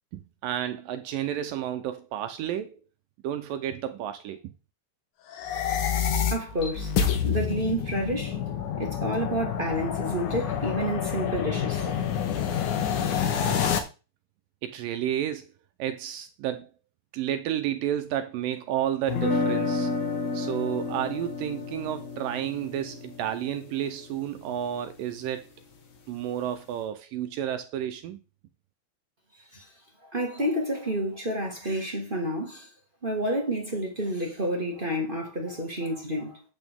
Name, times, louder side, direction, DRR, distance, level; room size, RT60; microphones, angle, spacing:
voice 1, 0.1-2.8 3.2-4.5 14.6-15.5 15.8-16.7 17.1-19.9 20.3-25.5 26.1-28.2, right 11 dB, 75° right, 2.2 m, -31 dB
sound 1, 5.3-13.8, left 8 dB, 65° left, 2.4 m, -28 dB
voice 2, 6.3-6.9 7.2-8.4 8.8-11.9 29.5-29.7 30.1-32.7 33.0-36.4, equal, 25° right, 1.0 m, -29 dB
sound 2, 19.1-25.1, left 3 dB, 85° left, 3.9 m, -31 dB
9.0 x 8.3 x 3.7 m
omnidirectional pair, 4.3 m